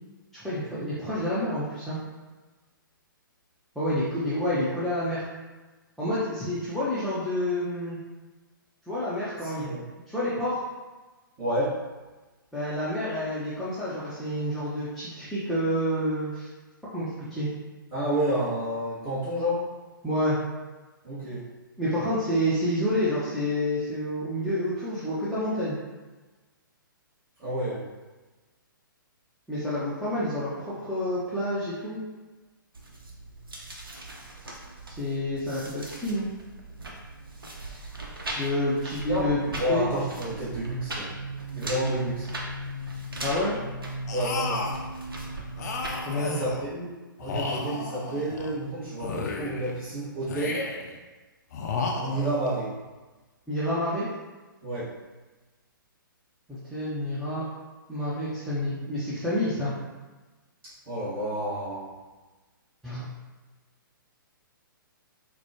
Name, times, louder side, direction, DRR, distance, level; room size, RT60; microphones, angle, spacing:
voice 1, 0.3-2.0 3.8-5.2 6.0-8.0 8.9-9.7 10.1-10.6 12.5-16.5 16.9-17.5 20.0-20.4 21.8-25.8 29.5-32.0 35.0-36.3 38.4-39.9 43.2-43.6 46.1-46.3 53.5-54.1 56.5-57.4 57.9-59.7 62.8-63.1, left 1 dB, ahead, -13 dB, 0.6 m, -28 dB
voice 2, 9.4-9.8 11.4-11.8 17.9-19.7 21.0-21.4 27.4-27.8 39.1-41.1 41.5-42.3 44.1-44.7 46.2-46.9 47.2-50.7 52.0-52.7 54.6-54.9 60.9-61.9, right 1 dB, 25° right, -13 dB, 1.3 m, -30 dB
sound 1, 32.7-46.0, right 1 dB, 80° right, 0.7 m, -37 dB
sound 2, 44.1-44.9 45.6-46.7 47.2-48.5 49.0-49.8 50.3-51.0 51.5-52.5, left 4 dB, 50° left, 0.4 m, -33 dB
4.2 x 2.2 x 2.8 m, 1.2 s
figure-of-eight pair, 125°, 12 cm